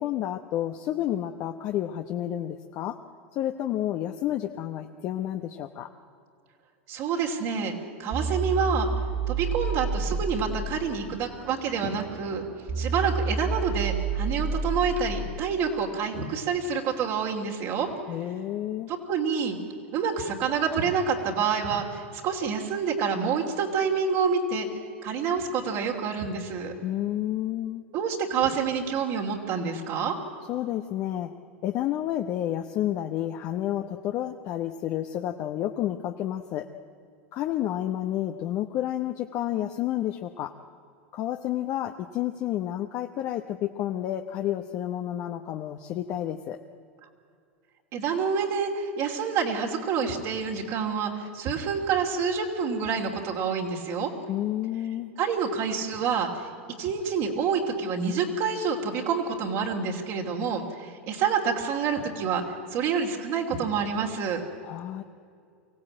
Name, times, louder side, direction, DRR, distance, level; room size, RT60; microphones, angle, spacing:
voice 1, 0.0-3.0 3.3-5.9 18.1-18.9 26.8-27.8 30.5-31.3 31.6-36.7 37.3-40.5 41.1-46.6 54.3-55.1 64.6-65.0, left 12 dB, 45° left, 5 dB, 1.0 m, -30 dB
voice 2, 6.9-7.7 8.0-8.9 9.3-12.4 12.8-17.9 18.9-19.6 19.9-24.7 25.0-26.7 27.9-30.2 47.9-54.1 55.2-56.3 56.8-62.4 62.7-64.4, right 6 dB, 50° right, 0 dB, 2.9 m, -27 dB
sound 1, 8.1-15.4, right 4 dB, 25° right, 0.9 m, -30 dB
24.5 x 16.0 x 8.8 m, 2.4 s
hypercardioid pair, 95°, 7 cm